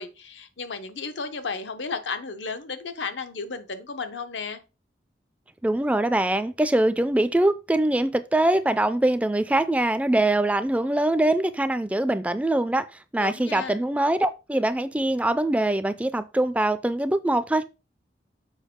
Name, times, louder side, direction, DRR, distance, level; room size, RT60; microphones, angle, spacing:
voice 1, 0.0-4.6 13.2-13.8, left 4 dB, 90° left, 0.8 m, -33 dB
voice 2, 5.6-12.9 13.1-17.7, right 1 dB, 10° right, 0.3 m, -23 dB
7.2 x 4.6 x 3.6 m
head